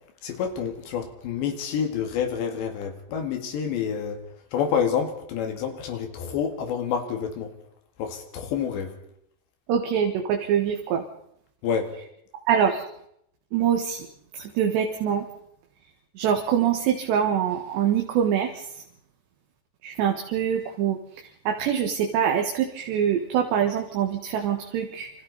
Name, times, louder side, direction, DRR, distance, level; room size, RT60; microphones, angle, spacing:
voice 1, 0.2-4.2 4.5-7.5 8.0-8.9 11.6-11.9, left 7 dB, 75° left, 5 dB, 4.1 m, -28 dB
voice 2, 9.7-11.0 12.5-12.9 13.5-14.1 14.3-15.3 16.2-18.7 19.8-21.0 21.5-25.1, right 8 dB, 75° right, 3 dB, 3.7 m, -24 dB
28.0 x 26.0 x 4.1 m, 0.74 s
omnidirectional pair, 5.2 m